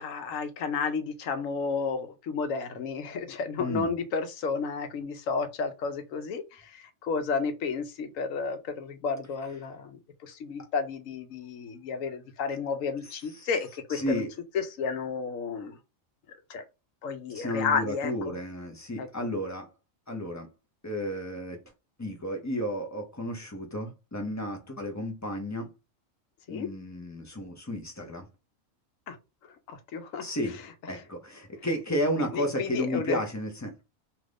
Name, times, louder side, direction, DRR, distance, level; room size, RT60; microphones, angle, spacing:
voice 1, 0.0-14.2 14.5-15.8 16.5-16.6 17.0-18.3 19.0-19.1 26.5-26.7 29.1-29.2 29.7-30.2 32.2-33.2, left 5 dB, 80° left, 1.1 m, -32 dB
voice 2, 3.6-3.9 13.3-13.5 13.9-14.3 17.3-19.7 20.1-20.5 20.8-21.6 22.0-25.7 26.5-28.3 30.2-30.6 30.9-33.7, equal, 20° left, 0.4 m, -32 dB
2.8 x 2.5 x 3.3 m
omnidirectional pair, 1.4 m